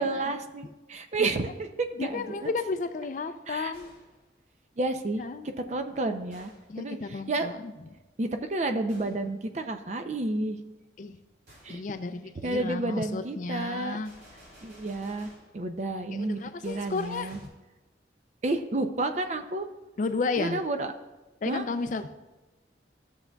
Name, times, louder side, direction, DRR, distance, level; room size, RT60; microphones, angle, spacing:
voice 1, 0.0-1.5 1.8-2.5 3.5-3.7 4.8-7.5 8.2-10.6 11.6-11.8 12.4-14.0 14.6-15.3 15.5-17.4 18.4-19.7 20.4-20.9 21.5-21.6, right 2 dB, 40° right, 0.5 m, -31 dB
Gunshot gunfire, 1.3-1.8 3.7-4.3 6.3-6.8 8.9-9.3 11.5-11.8 14.0-15.6 16.6-17.5, equal, 80° right, 2.7 m, -54 dB
voice 2, 2.0-3.9 5.2-5.5 6.7-7.7 11.0-11.2 11.7-14.1 16.1-17.4 20.0-20.6 21.4-22.2, left 4 dB, 45° left, 0.3 m, -33 dB
13.5 x 7.0 x 2.3 m
head